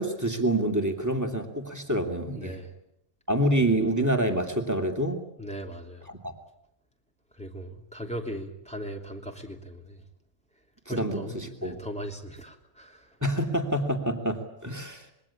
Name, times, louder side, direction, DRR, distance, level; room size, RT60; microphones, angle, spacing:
voice 1, 0.0-2.6 3.3-5.2 6.1-6.3 10.9-11.8 13.2-15.1, right 1 dB, 15° right, 4 dB, 2.7 m, -27 dB
voice 2, 2.3-2.7 3.5-3.6 5.4-6.1 7.4-10.0 10.9-13.2, equal, 5° left, 1 dB, 3.1 m, -39 dB
26.5 x 22.5 x 8.6 m, 0.78 s
omnidirectional pair, 1.4 m